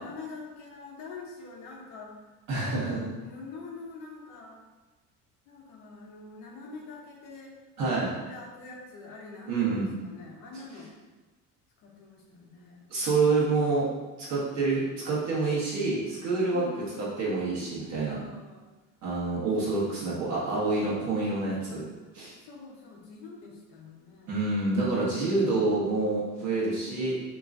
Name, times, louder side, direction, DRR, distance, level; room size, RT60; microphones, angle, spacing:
voice 1, 0.0-2.2 2.6-4.6 5.5-10.9 11.8-12.9 13.2-13.8 14.6-14.9 16.5-17.2 18.1-18.7 21.7-22.0 22.4-25.9 26.6-27.1, left 3 dB, 60° left, -1 dB, 0.8 m, -46 dB
voice 2, 2.5-3.0 7.8-8.1 9.5-9.9 12.9-13.9 14.2-16.6 17.0-18.2 19.0-21.8 22.1-22.3 24.3-27.1, right 3 dB, 50° right, -7 dB, 1.3 m, -27 dB
3.6 x 3.0 x 2.5 m, 1.2 s
cardioid pair, 150°, 35 cm